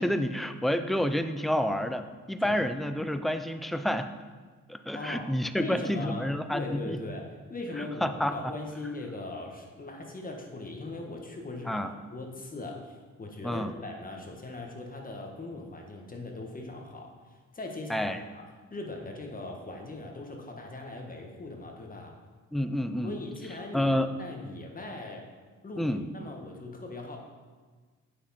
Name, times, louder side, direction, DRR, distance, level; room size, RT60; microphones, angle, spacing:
voice 1, 0.0-4.1 4.7-7.0 7.8-8.5 11.7-11.9 13.4-13.7 17.9-18.2 22.5-23.2 23.7-24.1 25.8-26.1, equal, ahead, 9 dB, 0.4 m, -29 dB
voice 2, 4.9-5.3 5.6-6.2 6.5-11.8 12.1-17.1 17.5-18.1 18.3-18.4 18.7-22.1 23.0-23.9 24.2-25.3 25.6-27.2, left 2 dB, 30° left, 1 dB, 1.3 m, -39 dB
8.2 x 6.0 x 4.2 m, 1.4 s
cardioid pair, 90°, 30 cm